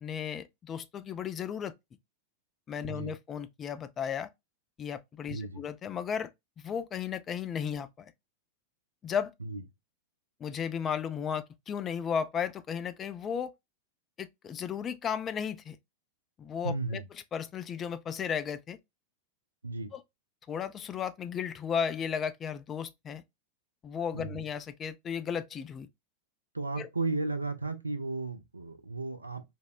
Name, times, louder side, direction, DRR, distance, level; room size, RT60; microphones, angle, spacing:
voice 1, 0.0-1.7 2.7-4.3 4.8-6.3 6.6-8.1 9.0-9.3 10.4-13.5 14.2-15.8 16.4-17.0 17.3-18.8 19.9-20.0 20.5-23.2 23.8-25.9 26.8-26.9, left 7 dB, 25° left, 0.3 m, -34 dB
voice 2, 5.3-5.6 9.4-9.6 16.6-17.0 19.6-19.9 24.1-24.4 26.5-29.4, right 3 dB, 80° right, 0.4 m, -34 dB
3.5 x 2.0 x 2.2 m
figure-of-eight pair, 90°, 0 cm